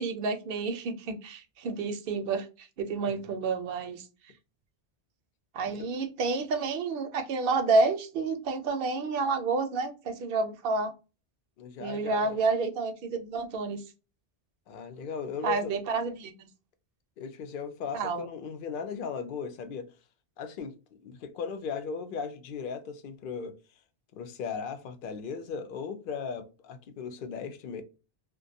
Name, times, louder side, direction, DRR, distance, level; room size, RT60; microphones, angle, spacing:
voice 1, 0.0-4.0 5.5-10.9 11.8-13.8 15.4-16.5 17.9-18.3, right 3 dB, 65° right, 0.7 m, -29 dB
voice 2, 5.6-6.0 11.6-12.4 14.7-15.8 17.2-19.9 20.4-20.7 21.0-23.6 24.1-27.8, left 6 dB, 60° left, 0.6 m, -37 dB
2.4 x 2.2 x 2.6 m
omnidirectional pair, 1.2 m